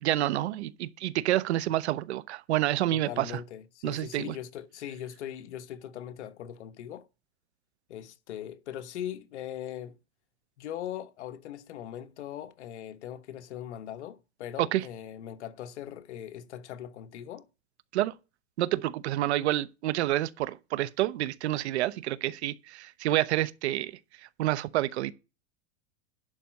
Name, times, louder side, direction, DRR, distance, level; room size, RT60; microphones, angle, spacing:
voice 1, 0.0-3.3 3.8-4.3 14.6-14.8 17.9-18.1 18.6-23.9 24.4-25.1, right 14 dB, 75° right, 0.9 m, -28 dB
voice 2, 2.9-7.1 7.9-10.0 10.6-17.5, left 10 dB, 85° left, 1.2 m, -40 dB
11.0 x 4.2 x 7.6 m
supercardioid pair, 150°, 34 cm